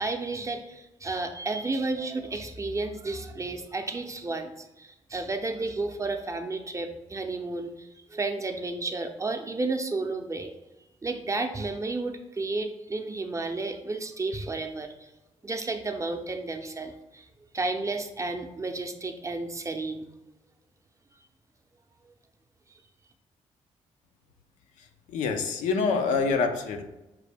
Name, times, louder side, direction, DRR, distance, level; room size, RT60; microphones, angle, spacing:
voice 1, 0.0-7.7 8.1-10.5 11.0-14.9 15.4-17.2 17.5-20.1, right 3 dB, 25° right, 5 dB, 0.5 m, -32 dB
voice 2, 24.8-26.8, left 5 dB, 85° left, 5 dB, 0.5 m, -26 dB
5.8 x 2.1 x 3.3 m, 0.99 s
cardioid pair, 70°, 13 cm